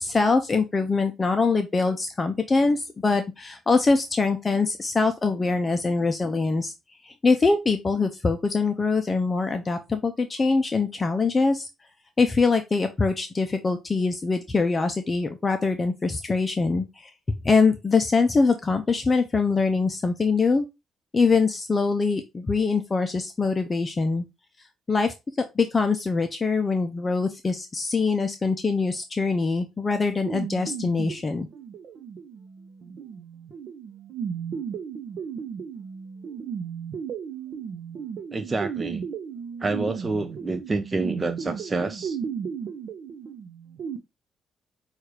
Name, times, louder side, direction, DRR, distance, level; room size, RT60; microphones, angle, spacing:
voice 1, 0.0-6.7 7.0-11.7 12.2-17.1 17.4-20.6 21.1-24.2 24.9-31.5, left 4 dB, 30° left, 0.5 m, -23 dB
Resonated Arpeggio, 30.2-44.0, right 7 dB, 65° right, 0.7 m, -35 dB
voice 2, 38.3-39.0 39.6-42.2, right 3 dB, 25° right, 0.4 m, -28 dB
6.0 x 2.4 x 3.2 m
cardioid pair, 90°, 0 cm